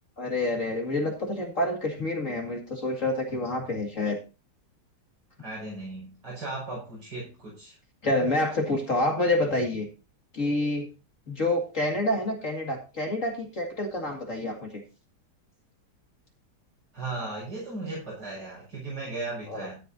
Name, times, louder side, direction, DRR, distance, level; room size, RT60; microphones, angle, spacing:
voice 1, 0.2-4.2 8.0-9.9 10.3-10.9 11.3-14.8 19.5-19.7, left 1 dB, 50° left, 2 dB, 2.5 m, -28 dB
voice 2, 5.4-7.8 16.9-19.8, right 2 dB, 80° right, -4 dB, 6.6 m, -36 dB
13.5 x 11.0 x 2.7 m, 0.30 s
omnidirectional pair, 1.8 m